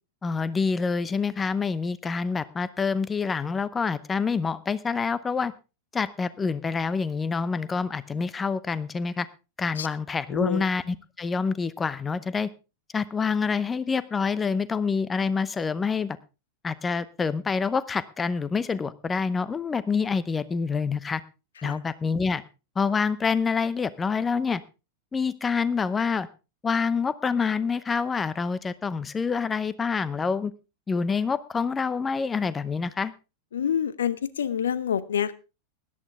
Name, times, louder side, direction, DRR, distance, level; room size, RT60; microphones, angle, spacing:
voice 1, 0.2-5.5 5.9-9.3 9.6-12.5 12.9-16.2 16.6-21.2 21.6-22.4 22.8-24.6 25.1-26.3 26.6-30.5 30.9-33.1, left 5 dB, 15° left, 18 dB, 0.7 m, -27 dB
voice 2, 10.3-10.6 21.6-21.8 33.5-35.3, left 8 dB, 65° left, 18 dB, 0.8 m, -27 dB
17.0 x 11.0 x 3.5 m, 0.30 s
figure-of-eight pair, 90°, 0 cm